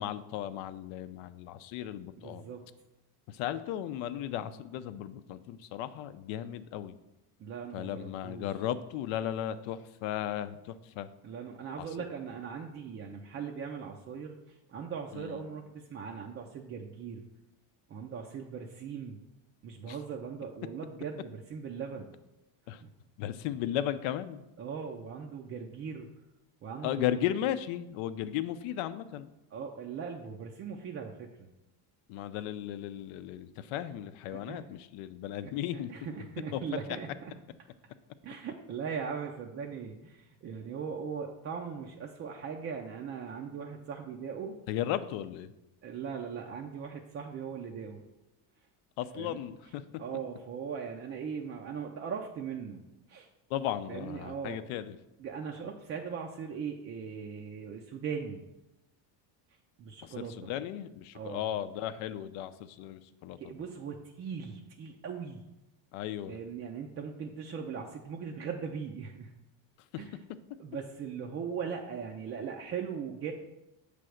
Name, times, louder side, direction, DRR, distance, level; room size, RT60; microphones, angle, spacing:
voice 1, 0.0-2.4 3.3-6.9 7.7-11.1 19.9-20.0 22.7-22.8 23.2-24.4 26.8-29.3 32.1-35.9 36.5-36.6 44.7-45.5 49.0-49.8 53.5-55.0 60.2-63.4 65.9-66.4, left 11 dB, 80° left, 12 dB, 0.6 m, -35 dB
voice 2, 2.2-2.7 7.4-8.6 11.2-17.2 17.9-19.2 19.6-22.1 22.8-22.9 24.6-26.1 26.6-27.2 29.5-31.5 34.3-34.7 35.4-37.3 38.2-44.6 45.8-48.0 49.1-49.4 49.6-49.7 50.0-53.3 53.9-54.6 55.2-58.5 59.8-60.5 61.1-61.4 63.4-65.5 66.3-69.3 70.0-70.2 70.6-73.3, right 6 dB, 30° right, 1 dB, 0.4 m, -39 dB
7.7 x 3.4 x 6.3 m, 0.94 s
cardioid pair, 155°, 48 cm